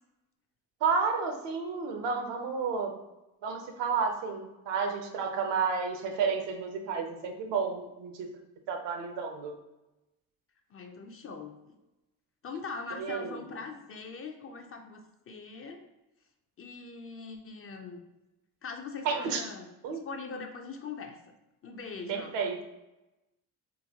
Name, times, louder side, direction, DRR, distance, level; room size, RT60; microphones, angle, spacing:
voice 1, 0.8-2.9 3.4-8.3 8.7-9.5 13.0-13.3 19.0-19.4 19.8-20.0 22.1-22.6, right 5 dB, 80° right, 3 dB, 0.7 m, -31 dB
voice 2, 10.7-11.7 12.4-15.9 16.6-18.0 18.6-21.2 21.6-22.4, left 4 dB, 35° left, 5 dB, 0.4 m, -42 dB
3.9 x 2.2 x 2.8 m, 0.99 s
cardioid pair, 80°, 42 cm